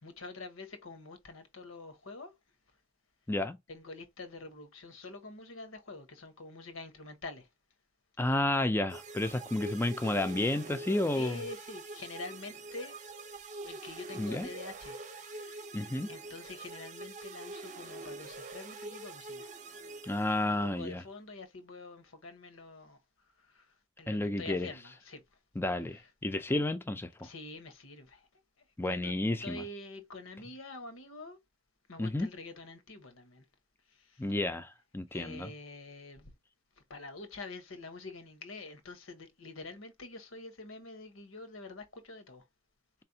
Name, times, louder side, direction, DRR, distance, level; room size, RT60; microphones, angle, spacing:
voice 1, 0.0-2.3 3.7-7.5 11.1-13.0 13.6-15.7 16.1-19.5 20.4-23.0 23.4-25.2 25.9-26.1 27.2-28.3 28.8-29.1 29.4-31.4 31.9-33.4 33.9-34.2 35.1-36.4 36.9-42.4, left 3 dB, 85° left, 1.1 m, -46 dB
voice 2, 8.2-11.4 14.2-14.5 15.7-16.1 20.0-21.0 24.1-24.7 25.6-27.1 28.8-29.6 32.0-32.3 34.2-35.5, left 2 dB, 10° left, 0.4 m, -31 dB
sound 1, 8.9-20.7, right 3 dB, 40° right, 0.7 m, -45 dB
4.3 x 3.4 x 2.7 m
head